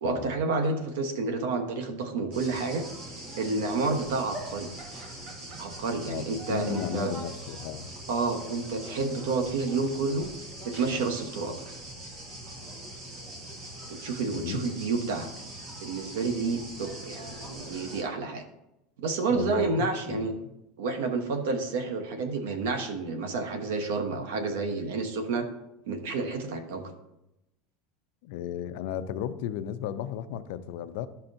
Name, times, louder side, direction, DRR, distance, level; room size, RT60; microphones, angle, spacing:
voice 1, 0.0-2.9 3.4-4.7 5.6-7.1 8.1-10.3 10.6-11.6 13.9-15.3 15.8-18.4 19.0-20.3 20.8-25.5 25.9-26.9, right 3 dB, 85° right, 7 dB, 1.0 m, -30 dB
sound 1, 2.3-18.0, right 1 dB, 40° right, 1.4 m, -42 dB
voice 2, 6.1-7.9 14.3-14.6 19.3-20.3 28.2-31.1, left 10 dB, 65° left, 12 dB, 0.5 m, -34 dB
11.5 x 5.7 x 2.6 m, 0.90 s
supercardioid pair, 160°, 0 cm